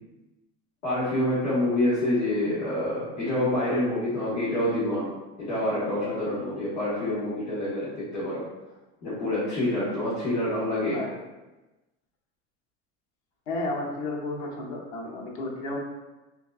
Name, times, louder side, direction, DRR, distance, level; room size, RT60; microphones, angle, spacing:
voice 1, 0.8-5.1 5.4-8.4 9.0-11.0, left 1 dB, 90° left, -12 dB, 1.5 m, -27 dB
voice 2, 13.5-15.8, left 2 dB, 65° left, -1 dB, 0.9 m, -32 dB
3.9 x 2.4 x 2.4 m, 1.1 s
hypercardioid pair, 95°, 38 cm